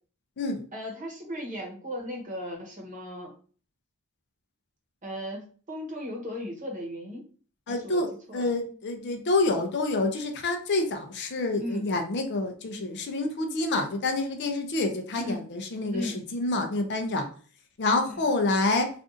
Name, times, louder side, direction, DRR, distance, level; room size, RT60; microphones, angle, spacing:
voice 1, 0.7-3.3 5.0-7.3 7.7-8.0 8.3-8.5 11.6-11.9 15.2-15.4 15.9-16.2 18.0-18.3, left 1 dB, 35° right, 0 dB, 0.9 m, -36 dB
voice 2, 7.7-8.1 8.3-17.3 17.8-18.9, left 2 dB, 50° left, 5 dB, 0.5 m, -27 dB
2.6 x 2.4 x 3.7 m, 0.41 s
head